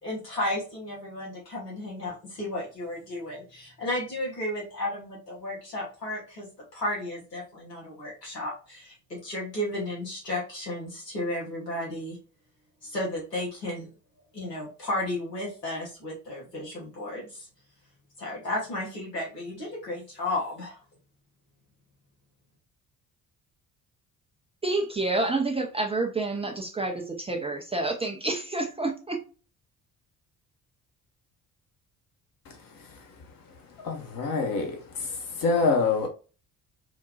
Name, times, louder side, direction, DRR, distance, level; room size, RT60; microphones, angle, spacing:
voice 1, 0.0-12.2 12.8-13.9 14.3-17.5 18.2-20.8, left 1 dB, 85° left, 1.2 m, -33 dB
voice 2, 24.6-29.2, right 2 dB, 15° right, 0.5 m, -28 dB
voice 3, 33.8-36.1, left 4 dB, 45° left, 1.0 m, -26 dB
3.9 x 2.2 x 2.3 m
figure-of-eight pair, 45°, 48 cm